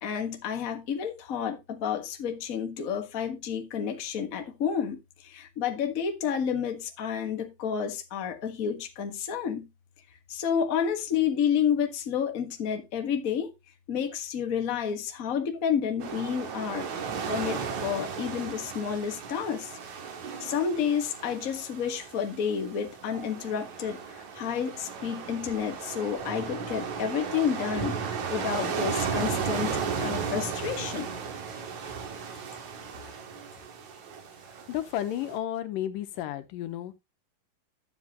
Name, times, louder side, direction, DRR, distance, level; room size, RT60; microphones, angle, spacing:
voice 1, 0.0-9.7 10.3-13.5 13.9-16.9 17.3-19.8 20.4-31.1, left 7 dB, 50° left, 1.0 m, -30 dB
sound 1, 16.0-35.4, right 6 dB, 65° right, 3.0 m, -35 dB
voice 2, 34.7-36.9, left 12 dB, 85° left, 2.6 m, -32 dB
11.5 x 7.5 x 2.9 m
omnidirectional pair, 3.8 m